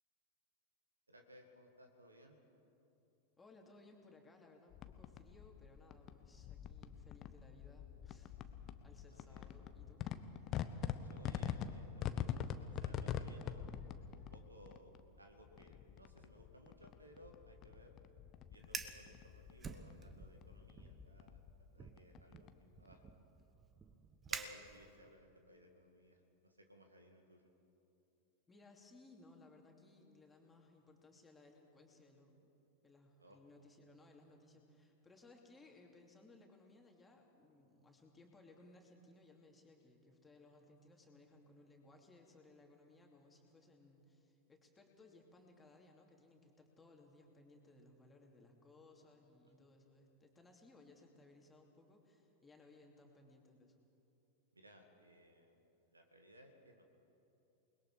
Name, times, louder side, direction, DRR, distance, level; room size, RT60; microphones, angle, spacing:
voice 1, 1.1-2.4 8.9-9.6 10.4-10.5 10.7-13.7 14.1-18.0 18.5-23.0 24.3-27.5 33.2-33.4 54.5-56.8, equal, 80° right, 4 dB, 2.2 m, -62 dB
voice 2, 3.4-8.5 8.8-10.1 28.5-32.5 32.8-53.8, left 2 dB, 10° left, 1 dB, 2.9 m, -63 dB
sound 1, 4.7-22.9, left 9 dB, 35° left, 0.9 m, -45 dB
Fire, 18.6-19.0 19.6-20.4 20.7-21.1 21.8-25.1, right 5 dB, 20° right, 1.2 m, -48 dB
28.5 x 21.0 x 5.0 m, 2.9 s
figure-of-eight pair, 90°, 0 cm